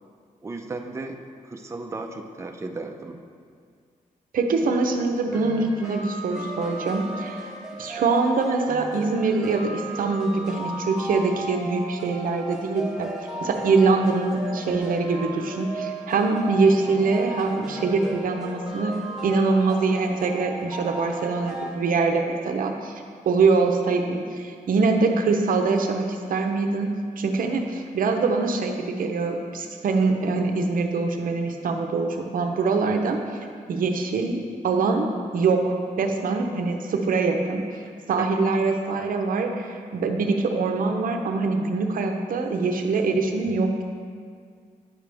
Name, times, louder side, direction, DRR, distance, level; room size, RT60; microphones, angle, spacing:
voice 1, 0.4-1.2 1.4-3.2 38.2-38.4, right 3 dB, 20° right, 3 dB, 0.5 m, -35 dB
voice 2, 4.3-7.5 7.8-13.1 13.4-19.0 19.2-26.9 27.2-33.2 33.7-37.8 38.1-43.8, right 4 dB, 90° right, 4 dB, 0.7 m, -24 dB
sound 1, 5.3-21.7, right 1 dB, 5° right, 1.1 m, -35 dB
8.8 x 6.6 x 3.4 m, 2.1 s
wide cardioid pair, 115°, 14 cm